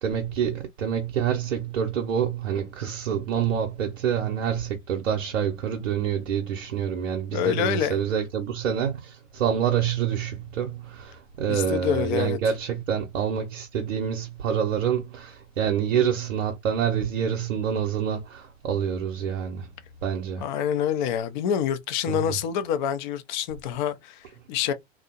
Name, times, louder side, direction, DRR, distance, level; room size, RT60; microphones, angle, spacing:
voice 1, 0.0-19.7 20.0-20.4 22.1-22.3, right 8 dB, 75° right, 0.7 m, -27 dB
voice 2, 7.3-8.0 11.5-12.4 20.4-24.7, left 9 dB, 40° left, 0.4 m, -27 dB
2.5 x 2.0 x 2.7 m
hypercardioid pair, 110°, 39 cm